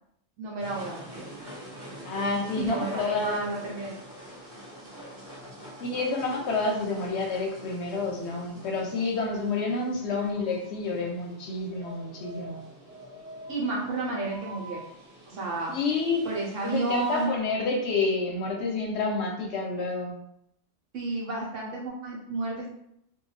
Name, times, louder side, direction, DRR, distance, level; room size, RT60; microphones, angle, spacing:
voice 1, 0.4-1.2 2.6-3.9 13.5-14.8 15.3-15.7 16.2-17.3 20.9-22.7, right 3 dB, 70° right, -3 dB, 1.1 m, -31 dB
sound 1, 0.6-17.3, equal, 45° right, 1.3 m, -46 dB
voice 2, 2.1-3.4 5.8-12.6 15.7-16.2 16.6-20.2, left 3 dB, 65° left, 0 dB, 0.8 m, -29 dB
2.6 x 2.3 x 3.1 m, 0.75 s
omnidirectional pair, 1.3 m